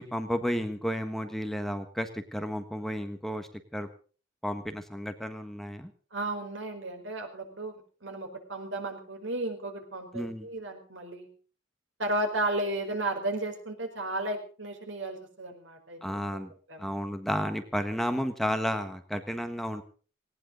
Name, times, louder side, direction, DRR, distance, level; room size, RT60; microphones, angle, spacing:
voice 1, 0.0-3.9 4.4-5.9 10.1-10.5 16.0-16.5 16.8-19.8, equal, ahead, 7 dB, 1.4 m, -32 dB
voice 2, 6.1-7.7 8.0-11.3 12.0-16.2 16.7-16.9, right 1 dB, 75° right, 5 dB, 4.6 m, -34 dB
19.0 x 18.5 x 3.9 m, 0.40 s
head